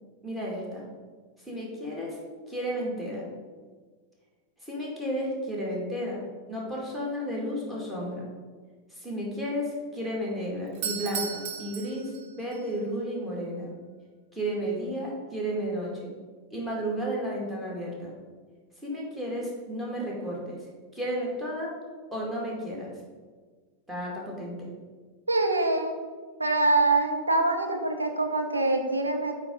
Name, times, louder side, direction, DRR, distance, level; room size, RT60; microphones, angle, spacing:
voice 1, 0.2-0.8 1.4-2.2 2.5-3.3 4.6-6.2 6.5-8.3 8.9-13.7 14.3-16.1 16.5-18.1 18.8-20.6 20.9-21.7 22.1-22.9 23.9-24.7, equal, 5° right, -5 dB, 2.3 m, -32 dB
Doorbell, 10.7-12.6, right 7 dB, 50° right, 1.0 m, -35 dB
voice 2, 25.3-26.0 26.4-29.3, right 2 dB, 80° right, 4 dB, 0.8 m, -24 dB
8.6 x 3.7 x 5.4 m, 1.5 s
figure-of-eight pair, 90°, 0 cm